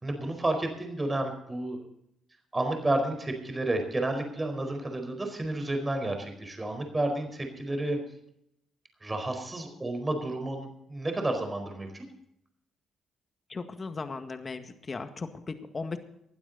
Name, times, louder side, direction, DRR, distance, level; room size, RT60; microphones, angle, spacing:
voice 1, 0.0-1.8 2.5-8.0 9.0-12.0, right 2 dB, 20° right, 5 dB, 4.5 m, -31 dB
voice 2, 13.5-16.0, left 4 dB, 35° left, 8 dB, 1.8 m, -37 dB
19.5 x 12.0 x 4.1 m, 0.76 s
cardioid pair, 90°, 0 cm